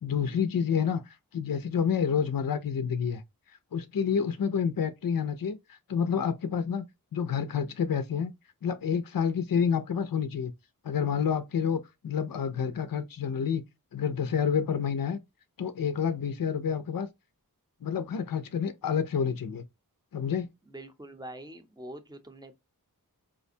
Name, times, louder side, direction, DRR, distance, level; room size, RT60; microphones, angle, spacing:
voice 1, 0.0-3.2 3.7-8.3 8.6-10.5 10.8-13.6 13.9-15.2 15.6-17.1 17.8-19.6 20.1-20.5, left 7 dB, 70° left, 0.5 m, -29 dB
voice 2, 20.6-22.5, right 1 dB, 10° right, 0.6 m, -44 dB
5.0 x 2.1 x 2.6 m
wide cardioid pair, 45°, 36 cm